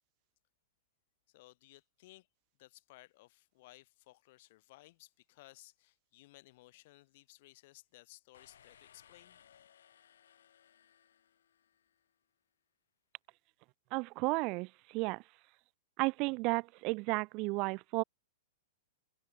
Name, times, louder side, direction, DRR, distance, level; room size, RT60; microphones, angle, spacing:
voice 1, 1.3-2.3 2.6-9.4, left 19 dB, 50° left, 1.4 m, -59 dB
sound 1, 8.3-12.1, left 9 dB, 90° left, 6.2 m, -63 dB
voice 2, 13.9-15.2 16.0-18.0, right 27 dB, 40° right, 0.4 m, -33 dB
hypercardioid pair, 150°, 0 cm